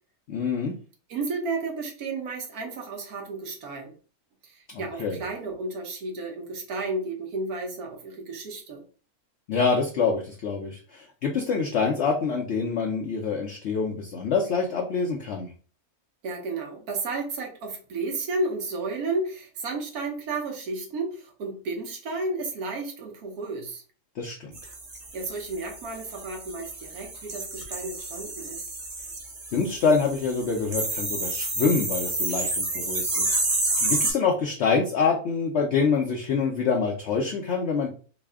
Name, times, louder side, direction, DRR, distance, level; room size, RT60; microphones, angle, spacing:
voice 1, 0.3-0.7 4.7-5.2 9.5-15.5 24.2-24.5 29.5-33.4 33.8-37.9, left 5 dB, 60° left, 0 dB, 0.8 m, -26 dB
voice 2, 1.1-4.0 4.4-8.8 16.2-23.8 25.1-28.7, right 3 dB, 80° right, 2 dB, 1.4 m, -32 dB
sound 1, 24.5-34.1, right 2 dB, 35° right, 0.8 m, -30 dB
4.0 x 2.1 x 3.5 m, 0.39 s
omnidirectional pair, 1.5 m